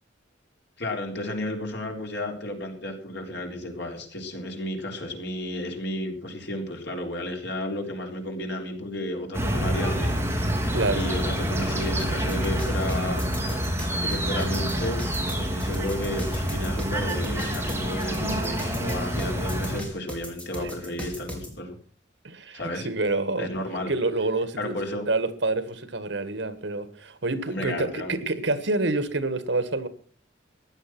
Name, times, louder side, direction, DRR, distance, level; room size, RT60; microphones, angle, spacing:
voice 1, 0.8-10.3 10.9-13.2 14.0-15.0 15.3-21.8 22.5-22.9 23.4-23.9 24.6-25.1 27.5-28.2, left 1 dB, 65° left, 3 dB, 3.8 m, -32 dB
sound 1, 9.3-19.8, equal, 15° right, 2.8 m, -27 dB
voice 2, 10.7-11.1 20.6-20.7 22.2-23.5 23.9-24.7 25.1-29.9, right 2 dB, 75° right, 13 dB, 1.7 m, -27 dB
sound 2, 12.0-21.5, equal, 5° left, 4.6 m, -38 dB
15.5 x 11.0 x 6.1 m, 0.43 s
head